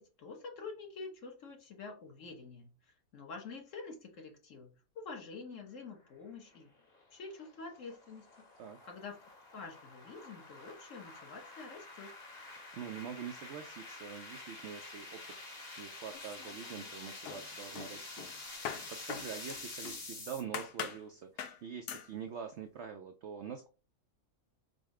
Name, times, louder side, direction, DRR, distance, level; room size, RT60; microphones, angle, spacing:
voice 1, 0.0-6.7 7.1-8.5 8.9-9.2 9.5-12.1, left 4 dB, 55° left, 2 dB, 1.3 m, -47 dB
sound 1, 6.5-20.4, left 2 dB, 30° left, 1.2 m, -48 dB
voice 2, 12.7-15.2 15.5-23.7, right 7 dB, 70° right, 6 dB, 0.6 m, -45 dB
sound 2, 16.1-16.9 17.3-20.1 20.5-21.0 21.4-21.6 21.9-22.1, left 8 dB, 90° left, 1.2 m, -43 dB
5.1 x 2.1 x 4.7 m, 0.34 s
omnidirectional pair, 1.7 m